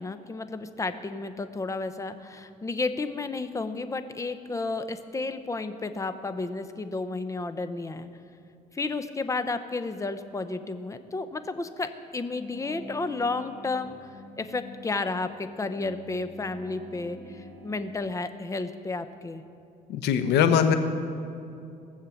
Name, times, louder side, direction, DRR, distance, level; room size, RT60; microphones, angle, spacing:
voice 1, 0.0-8.1 8.7-19.4, left 3 dB, 20° left, 10 dB, 0.8 m, -32 dB
sound 1, 12.5-17.9, left 1 dB, 5° right, 3.4 m, -45 dB
voice 2, 19.9-20.7, left 8 dB, 85° left, 8 dB, 1.0 m, -21 dB
18.5 x 7.5 x 7.1 m, 2.6 s
cardioid pair, 110°, 17 cm